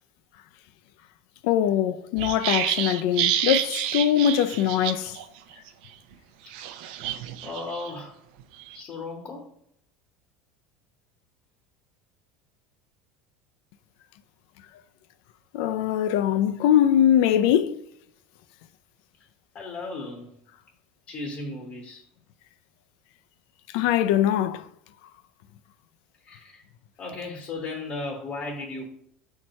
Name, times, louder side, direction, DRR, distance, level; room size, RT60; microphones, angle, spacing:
voice 1, 1.4-5.2 15.5-17.8 23.7-24.6, left 10 dB, 60° left, 0.5 m, -22 dB
sound 1, 2.2-5.2 5.5-5.7 6.5-7.9 8.4-8.8, right 11 dB, 65° right, 0.7 m, -29 dB
voice 2, 7.4-8.2 8.7-9.5 19.5-20.3 21.1-22.0 26.2-26.6 27.0-28.9, left 3 dB, 25° left, 1.0 m, -35 dB
5.7 x 4.5 x 6.3 m
cardioid pair, 180°, 5 cm